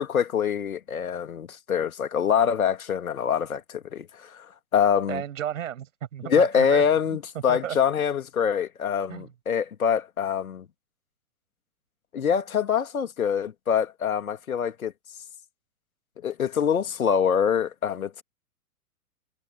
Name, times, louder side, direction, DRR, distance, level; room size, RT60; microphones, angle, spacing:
voice 1, 0.0-4.5 4.7-5.2 6.2-10.6 12.1-14.9 16.2-18.2, left 7 dB, 65° left, 2.7 m, -25 dB
voice 2, 5.1-6.8 7.5-7.8 9.1-9.3, right 10 dB, 60° right, 6.3 m, -33 dB
figure-of-eight pair, 110°, 44 cm